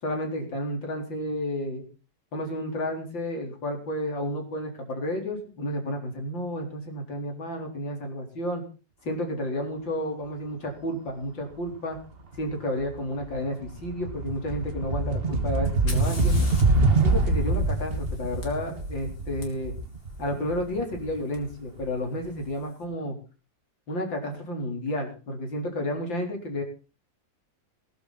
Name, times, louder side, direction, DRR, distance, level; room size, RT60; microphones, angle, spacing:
voice 1, 0.0-1.8 2.3-8.6 9.0-12.0 12.4-16.4 16.9-19.7 20.2-23.2 23.9-26.6, left 1 dB, 85° left, 2 dB, 4.9 m, -31 dB
sound 1, 12.3-12.6 12.9-21.8, right 2 dB, 30° right, 1.9 m, -25 dB
Fire, 15.7-19.5 21.3-21.4 22.3-22.7, left 2 dB, 60° left, 4.5 m, -44 dB
20.0 x 11.5 x 4.2 m, 0.34 s
omnidirectional pair, 2.0 m